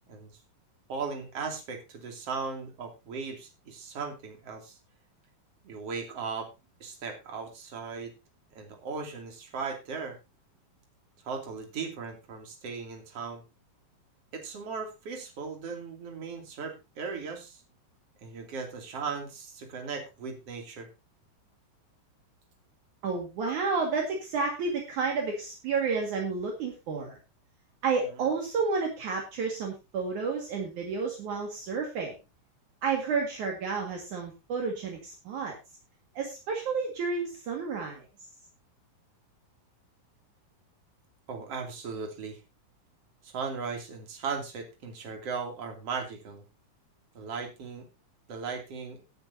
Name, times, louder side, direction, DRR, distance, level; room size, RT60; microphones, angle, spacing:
voice 1, 0.9-4.8 5.6-6.5 6.8-8.1 8.6-10.2 11.3-13.4 14.3-17.6 18.2-20.9 41.3-42.4 43.2-46.4 47.1-47.9 48.3-49.0, right 5 dB, 45° right, 3 dB, 3.6 m, -37 dB
voice 2, 23.0-27.2 27.8-32.2 32.8-35.5 36.1-38.1, right 4 dB, 65° right, 1 dB, 3.3 m, -31 dB
17.5 x 9.5 x 2.8 m, 0.26 s
omnidirectional pair, 3.9 m